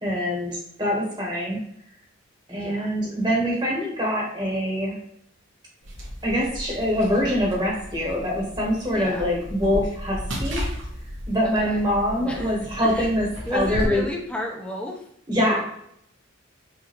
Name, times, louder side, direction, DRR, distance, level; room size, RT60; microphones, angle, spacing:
voice 1, 0.0-1.6 2.5-4.9 6.2-10.6 11.3-14.0 15.3-15.6, equal, 25° right, -3 dB, 1.1 m, -24 dB
voice 2, 2.5-2.9 8.9-9.3 11.4-11.8 12.2-13.1 13.4-15.0 15.4-15.6, left 1 dB, 5° left, -1 dB, 0.7 m, -33 dB
sound 1, 5.8-13.9, equal, 75° right, 1.3 m, -34 dB
5.0 x 2.6 x 3.0 m, 0.73 s
head